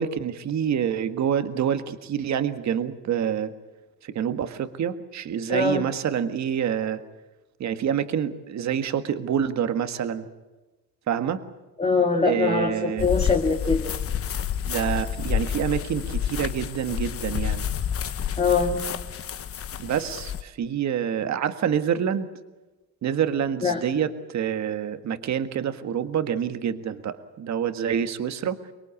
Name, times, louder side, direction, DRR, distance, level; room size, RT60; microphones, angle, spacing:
voice 1, 0.0-3.5 4.0-7.0 7.6-10.3 11.1-11.4 12.2-13.1 14.7-17.7 19.8-22.3 23.0-28.6, right 8 dB, 50° right, 9 dB, 1.7 m, -27 dB
voice 2, 5.5-5.9 11.8-13.9 18.4-18.8 23.6-23.8, left 4 dB, 15° left, 1 dB, 2.0 m, -23 dB
sound 1, 13.0-20.4, left 9 dB, 40° left, 1.1 m, -29 dB
25.0 x 22.0 x 8.5 m, 1.1 s
cardioid pair, 130°, 35 cm